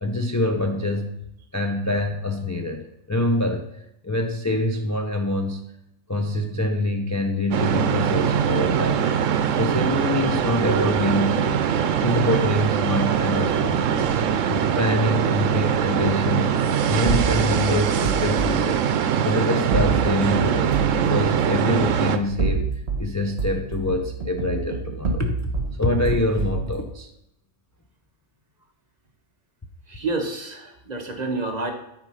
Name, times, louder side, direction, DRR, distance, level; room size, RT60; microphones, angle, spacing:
voice 1, 0.0-1.1 1.5-3.7 4.0-5.7 6.1-9.0 9.5-11.6 12.0-14.1 14.5-16.5 16.9-18.9 19.2-25.5 25.8-27.1, left 1 dB, 20° left, 2 dB, 0.5 m, -25 dB
sound 1, 7.5-22.2, right 8 dB, 80° right, 1.0 m, -22 dB
sound 2, 17.1-18.6 19.7-21.0 22.2-23.1 23.4-25.7 26.1-26.7, right 5 dB, 55° right, 1.5 m, -26 dB
voice 2, 29.9-31.7, right 3 dB, 35° right, 3 dB, 1.1 m, -29 dB
9.3 x 4.5 x 5.6 m, 0.80 s
omnidirectional pair, 1.3 m